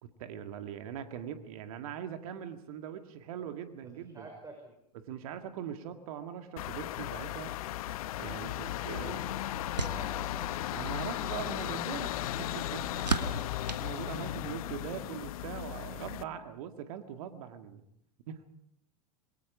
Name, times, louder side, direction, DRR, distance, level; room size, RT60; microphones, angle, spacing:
voice 1, 0.0-4.3 4.9-7.5 8.2-9.2 10.7-12.9 13.7-17.8 18.3-18.4, right 9 dB, 60° right, 8 dB, 2.1 m, -41 dB
voice 2, 4.0-4.7 8.5-8.7 8.9-10.5 13.2-13.8, right 2 dB, 15° right, 3 dB, 5.5 m, -49 dB
sound 1, 6.6-16.2, left 14 dB, 60° left, 0.9 m, -36 dB
sound 2, 8.6-14.8, right 3 dB, 90° right, 1.5 m, -39 dB
27.5 x 22.5 x 5.0 m, 0.76 s
figure-of-eight pair, 90°, 21 cm